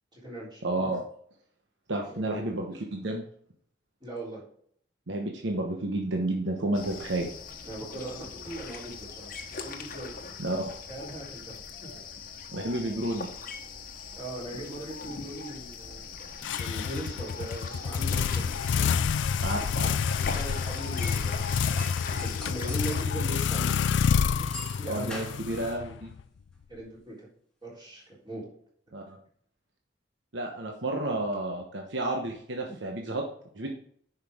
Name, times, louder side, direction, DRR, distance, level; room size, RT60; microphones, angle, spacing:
voice 1, 0.1-0.6 2.1-2.5 4.0-4.4 7.6-9.3 9.6-10.2 10.9-11.6 11.8-12.0 14.2-16.1 16.5-18.6 20.1-23.8 24.1-25.2 26.7-27.3 27.6-28.5 32.7-32.8, right 1 dB, 25° right, -6 dB, 3.7 m, -40 dB
voice 2, 0.6-1.1 1.9-3.2 5.1-7.3 10.4-10.7 12.5-13.3 19.4-19.9 24.8-26.1 28.9-29.2 30.3-33.2 33.5-33.7, right 2 dB, 75° right, 1 dB, 1.1 m, -31 dB
sound 1, 6.7-23.1, left 5 dB, 50° left, 1.0 m, -40 dB
sound 2, 16.4-26.2, left 6 dB, 75° left, 0.3 m, -28 dB
sound 3, 20.5-21.2 21.6-22.9 23.3-23.4 24.3-25.9, left 1 dB, 5° left, 1.6 m, -44 dB
10.0 x 5.6 x 3.6 m, 0.62 s
head